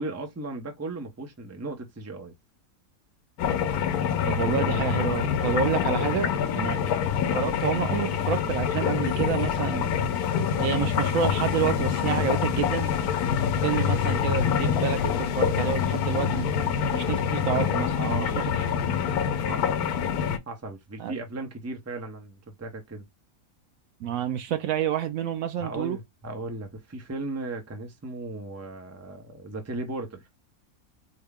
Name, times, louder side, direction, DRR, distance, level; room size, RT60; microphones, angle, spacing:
voice 1, 0.0-2.3 6.5-6.8 18.0-18.3 19.5-19.8 20.5-23.1 25.6-30.3, right 2 dB, 15° right, 0.6 m, -36 dB
sound 1, 3.4-20.4, left 8 dB, 75° left, 1.1 m, -26 dB
voice 2, 4.3-6.8 7.3-9.9 10.6-12.9 13.6-16.5 16.9-18.4 21.0-21.1 24.0-26.0, right 8 dB, 70° right, 0.9 m, -29 dB
4.3 x 2.2 x 3.5 m
omnidirectional pair, 1.6 m